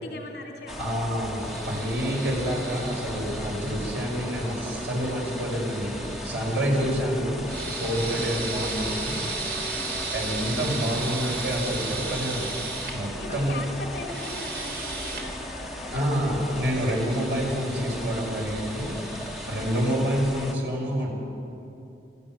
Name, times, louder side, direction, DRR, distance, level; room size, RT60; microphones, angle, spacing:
voice 1, 0.0-0.9 6.6-6.9 8.1-8.4 9.7-10.0 13.2-16.8 19.5-19.7, left 2 dB, 65° left, 1 dB, 3.0 m, -40 dB
sound 1, 0.7-20.5, left 1 dB, ahead, 1.4 m, -37 dB
voice 2, 0.8-6.0 6.2-7.4 7.7-9.2 10.1-12.5 12.9-13.6 15.9-18.9 19.5-21.1, equal, 85° right, -2 dB, 5.3 m, -27 dB
sound 2, 1.4-6.6 7.4-12.9 14.0-15.2 16.3-19.9, right 3 dB, 60° right, 3.8 m, -36 dB
27.0 x 14.0 x 7.5 m, 2.7 s
head